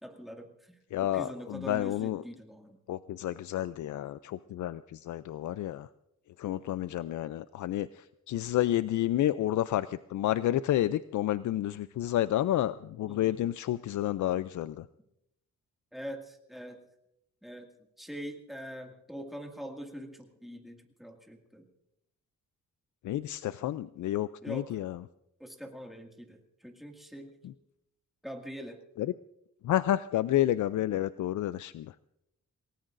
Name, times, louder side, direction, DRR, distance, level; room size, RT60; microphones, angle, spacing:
voice 1, 0.0-2.8 13.0-13.5 15.9-16.8 17.4-17.7 18.0-21.7 24.4-24.7 25.4-27.3 28.2-28.8, equal, ahead, 1 dB, 2.1 m, -43 dB
voice 2, 0.9-2.2 2.9-5.9 6.4-14.9 23.0-25.0 27.4-27.5 29.0-29.1 29.6-31.9, left 13 dB, 75° left, 14 dB, 0.5 m, -30 dB
28.0 x 18.0 x 2.6 m, 0.81 s
wide cardioid pair, 145°, 30 cm